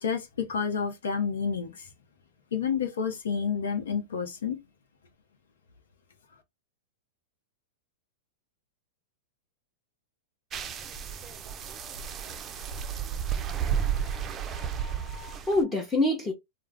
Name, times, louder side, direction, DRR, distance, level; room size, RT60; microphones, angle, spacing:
voice 1, 0.0-1.9 2.5-4.6, left 6 dB, 80° left, 0.7 m, -29 dB
sound 1, 10.5-15.6, right 8 dB, 25° right, 0.4 m, -32 dB
voice 2, 13.7-16.3, left 2 dB, 15° left, 0.7 m, -29 dB
2.3 x 2.0 x 3.3 m
hypercardioid pair, 115°, 0 cm